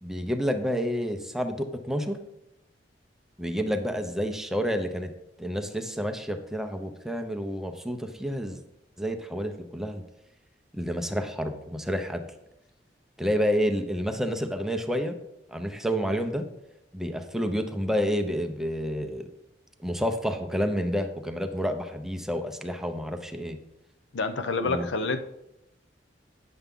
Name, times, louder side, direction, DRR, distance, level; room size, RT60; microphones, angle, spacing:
voice 1, 0.0-2.2 3.4-5.1 5.4-8.6 9.0-10.0 10.7-12.2 13.2-15.2 15.5-16.5 16.9-19.3 19.8-23.6 24.6-25.1, equal, ahead, 5 dB, 0.6 m, -29 dB
voice 2, 24.1-25.2, left 3 dB, 75° left, 10 dB, 0.6 m, -28 dB
9.4 x 6.9 x 3.7 m, 0.87 s
head